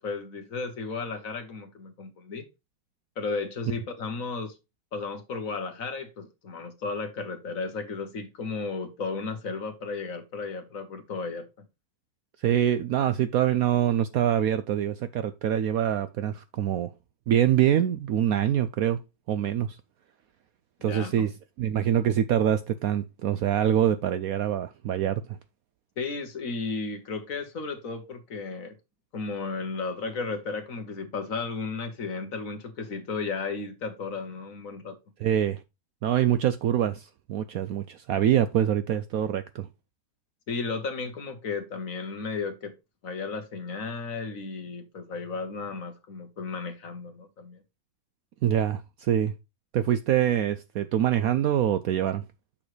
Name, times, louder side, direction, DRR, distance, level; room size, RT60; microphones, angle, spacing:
voice 1, 0.0-2.4 3.2-4.6 4.9-11.6 20.8-21.3 26.0-28.7 29.1-35.0 40.5-42.7 43.0-47.6, left 4 dB, 55° left, 1.5 m, -34 dB
voice 2, 12.4-16.9 17.3-19.0 19.3-19.8 20.8-21.3 21.6-25.2 35.2-35.6 36.0-39.7 48.4-49.3 49.7-52.2, right 10 dB, 70° right, 0.9 m, -25 dB
8.6 x 6.4 x 3.2 m
omnidirectional pair, 1.9 m